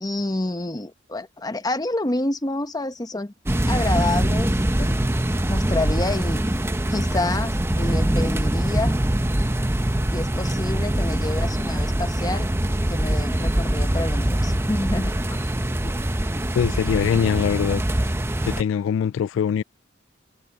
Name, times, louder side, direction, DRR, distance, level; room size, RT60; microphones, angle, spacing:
voice 1, 0.0-3.3 3.7-4.5 4.8-5.0 5.5-6.4 6.9-9.0 10.1-12.5 12.8-15.1 15.8-15.9, left 2 dB, 20° left, 1.0 m, -28 dB
sound 1, 3.5-18.6, right 1 dB, 15° right, 0.8 m, -23 dB
voice 2, 16.5-17.8 18.4-19.6, left 7 dB, 80° left, 0.3 m, -22 dB
head